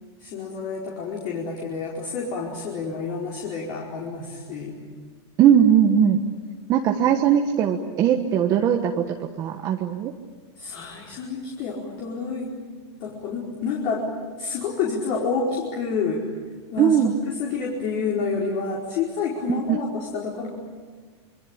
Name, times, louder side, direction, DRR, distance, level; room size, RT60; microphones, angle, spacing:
voice 1, 0.2-4.8 10.6-12.5 13.0-14.1 14.4-16.3 16.7-16.9 17.3-20.5, left 5 dB, 40° left, -3 dB, 4.8 m, -29 dB
voice 2, 5.4-6.2 6.7-10.1 16.8-17.2 19.5-19.8, right 9 dB, 25° right, 3 dB, 1.4 m, -19 dB
27.0 x 24.5 x 8.9 m, 1.4 s
supercardioid pair, 165°, 15 cm